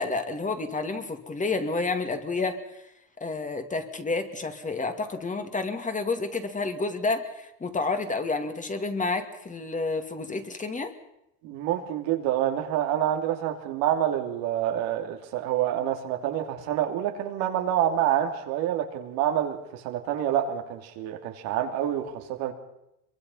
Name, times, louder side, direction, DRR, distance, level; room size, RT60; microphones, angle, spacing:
voice 1, 0.0-2.6 3.2-10.9, left 3 dB, 20° left, 7 dB, 2.5 m, -30 dB
voice 2, 11.4-22.5, right 11 dB, 90° right, 4 dB, 3.0 m, -27 dB
24.0 x 23.0 x 5.6 m, 0.83 s
cardioid pair, 115°, 35 cm